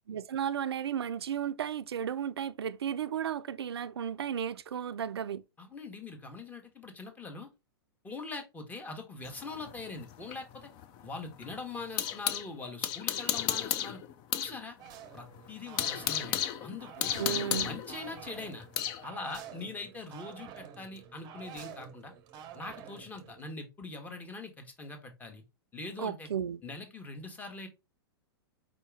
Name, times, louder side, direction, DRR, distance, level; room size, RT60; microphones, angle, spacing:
voice 1, 0.1-5.4 17.2-17.7 26.0-26.6, right 9 dB, 85° right, 0.4 m, -34 dB
voice 2, 5.6-7.5 8.0-10.7 11.0-14.0 14.3-14.8 15.1-18.6 19.0-22.1 22.5-25.4 25.7-26.3 26.6-27.7, left 3 dB, 10° left, 1.1 m, -42 dB
sound 1, 9.2-12.5 12.8-14.6 14.9-15.0 15.4-19.0, left 10 dB, 35° left, 0.5 m, -33 dB
sound 2, 14.8-23.4, right 9 dB, 35° right, 0.7 m, -49 dB
4.9 x 2.8 x 3.4 m
hypercardioid pair, 115°, 13 cm